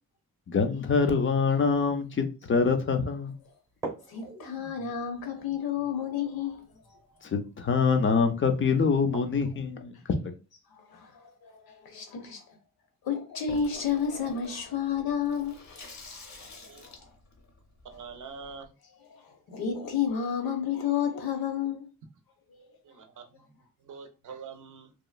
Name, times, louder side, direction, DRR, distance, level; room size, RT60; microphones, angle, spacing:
voice 1, 0.5-3.4 7.2-10.2, left 5 dB, 35° left, 0.5 m, -25 dB
sound 1, 2.5-2.6 3.1-3.2 3.7-9.6, right 3 dB, 10° right, 0.8 m, -46 dB
voice 2, 4.1-7.0 10.7-12.5 13.0-15.8 16.1-17.0 19.1-21.9 22.5-22.7, left 7 dB, 80° left, 0.9 m, -31 dB
Water tap faucet / Sink (filling or washing), 13.5-18.7, left 3 dB, 50° left, 0.9 m, -47 dB
voice 3, 17.8-18.7 22.8-24.9, right 5 dB, 55° right, 0.6 m, -45 dB
2.9 x 2.3 x 2.3 m
cardioid pair, 115°, 36 cm